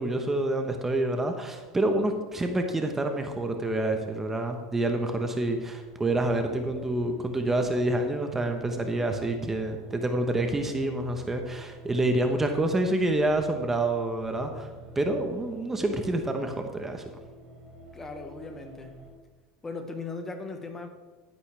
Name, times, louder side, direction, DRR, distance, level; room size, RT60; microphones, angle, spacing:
voice 1, 0.0-14.7 14.9-17.1, right 2 dB, 15° right, 5 dB, 1.2 m, -27 dB
sound 1, 5.0-19.1, right 1 dB, 40° right, 3.8 m, -49 dB
voice 2, 17.9-18.9 19.6-20.9, left 3 dB, 20° left, 6 dB, 1.4 m, -38 dB
11.5 x 10.0 x 3.5 m, 1.3 s
hypercardioid pair, 100°, 2 cm